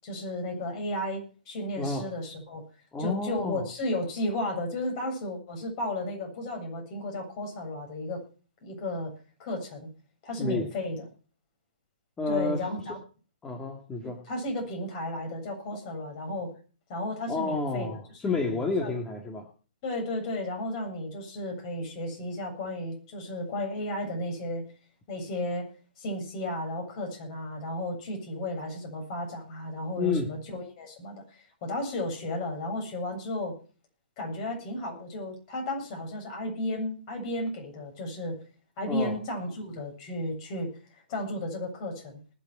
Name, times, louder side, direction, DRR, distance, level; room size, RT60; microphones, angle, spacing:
voice 1, 0.0-2.6 3.0-8.2 8.6-9.1 9.4-9.9 10.2-11.1 12.3-13.0 14.0-16.5 16.9-17.9 18.2-18.9 19.8-24.7 25.1-25.7 26.0-33.5 34.2-38.4 38.8-42.2, left 1 dB, 40° left, 3 dB, 7.6 m, -34 dB
voice 2, 1.8-2.1 2.9-3.6 10.4-10.7 12.2-12.7 13.4-14.2 17.3-19.5 30.0-30.3 38.8-39.2, left 3 dB, 15° left, 3 dB, 2.0 m, -30 dB
20.0 x 7.1 x 6.1 m, 0.38 s
hypercardioid pair, 135°, 5 cm